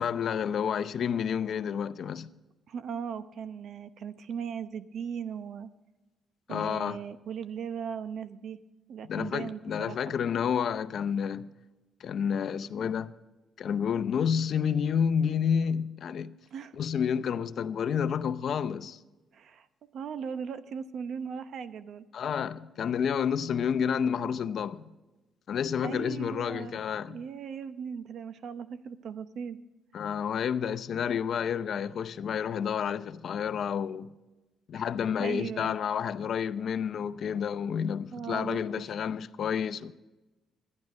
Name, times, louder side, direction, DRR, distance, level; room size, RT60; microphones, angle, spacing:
voice 1, 0.0-2.3 6.5-7.0 9.1-11.5 12.0-13.1 13.6-16.3 16.8-19.0 22.1-24.8 25.5-27.2 29.9-34.1 34.7-39.9, left 7 dB, 60° left, 0.6 m, -30 dB
voice 2, 2.7-5.7 6.5-8.6 8.9-10.0 16.5-16.8 19.3-19.7 19.9-22.1 25.8-26.8 27.1-29.6 30.6-30.7 34.7-34.8 35.2-35.8 38.1-38.7, right 7 dB, 65° right, 0.7 m, -38 dB
12.5 x 11.0 x 5.3 m
cardioid pair, 90°, 0 cm